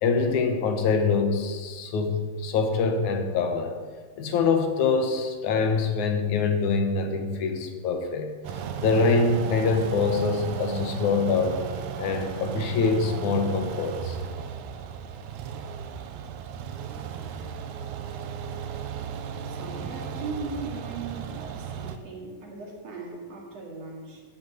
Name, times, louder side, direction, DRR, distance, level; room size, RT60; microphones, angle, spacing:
voice 1, 0.0-3.8 4.2-8.3 8.8-11.6 12.0-14.2, left 4 dB, 85° left, 5 dB, 2.7 m, -24 dB
sound 1, 8.4-22.0, right 7 dB, 85° right, 2.2 m, -35 dB
voice 2, 19.4-24.2, right 3 dB, 60° right, -1 dB, 3.5 m, -38 dB
12.5 x 6.0 x 9.2 m, 1.5 s
omnidirectional pair, 3.3 m